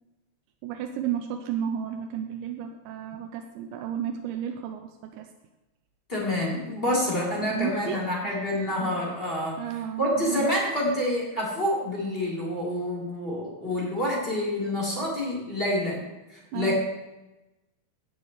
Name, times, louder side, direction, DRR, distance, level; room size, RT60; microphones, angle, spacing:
voice 1, 0.6-5.3 7.5-8.0 9.6-10.5 16.5-16.8, right 9 dB, 90° right, 4 dB, 3.0 m, -32 dB
voice 2, 6.1-9.6 10.0-16.8, left 1 dB, 15° left, -5 dB, 3.6 m, -27 dB
17.0 x 9.1 x 3.3 m, 1.0 s
omnidirectional pair, 5.1 m